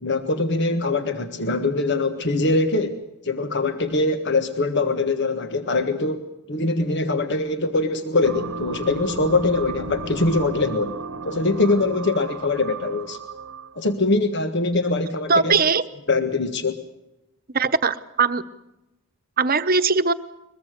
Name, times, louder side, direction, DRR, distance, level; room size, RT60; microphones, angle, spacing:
voice 1, 0.0-3.0 3.2-11.0 11.2-13.2 13.7-15.6 16.1-16.8, left 2 dB, 55° left, 8 dB, 1.5 m, -23 dB
sound 1, 8.2-13.9, right 4 dB, 75° right, 1.0 m, -34 dB
voice 2, 15.3-15.8 17.5-18.4 19.4-20.1, right 4 dB, 40° right, 11 dB, 1.0 m, -20 dB
22.5 x 22.5 x 6.6 m, 0.93 s
head